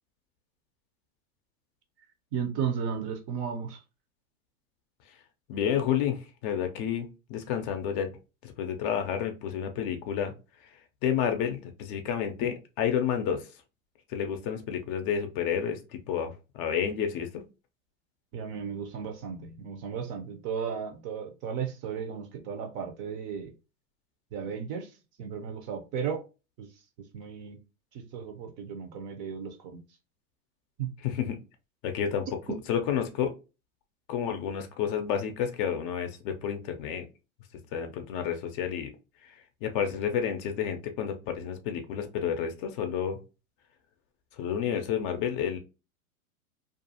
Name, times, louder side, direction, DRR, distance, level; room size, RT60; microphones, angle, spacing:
voice 1, 2.3-3.8 18.3-23.5 24.3-24.9 25.2-26.2 26.6-26.7 27.1-27.6 28.1-29.8 30.8-30.9, right 7 dB, 35° right, 0.5 m, -34 dB
voice 2, 5.5-8.1 8.4-10.3 11.0-13.5 14.1-15.8 16.1-17.4 31.0-31.4 31.8-32.3 32.7-33.3 34.1-37.1 37.7-38.9 39.6-43.2 44.4-45.6, left 8 dB, 40° left, 0.5 m, -30 dB
2.5 x 2.3 x 2.7 m
hypercardioid pair, 110°, 42 cm